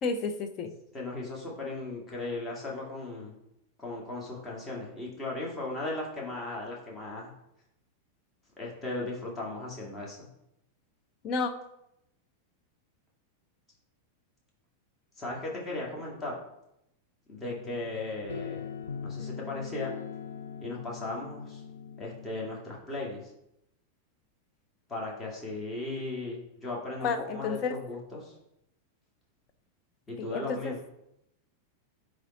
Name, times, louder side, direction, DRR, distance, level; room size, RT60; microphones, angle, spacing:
voice 1, 0.0-0.7 11.2-11.5 27.0-27.8 30.2-30.7, left 4 dB, 35° left, 7 dB, 0.8 m, -31 dB
voice 2, 0.9-3.3 3.8-7.3 8.6-10.2 15.2-16.4 17.3-18.6 19.0-19.9 20.6-21.6 22.0-23.3 24.9-28.3 30.1-30.8, left 2 dB, 20° left, -3 dB, 2.1 m, -37 dB
sound 1, 17.4-22.5, left 6 dB, 70° left, 0.7 m, -41 dB
9.0 x 3.6 x 4.1 m, 0.82 s
figure-of-eight pair, 90°, 0 cm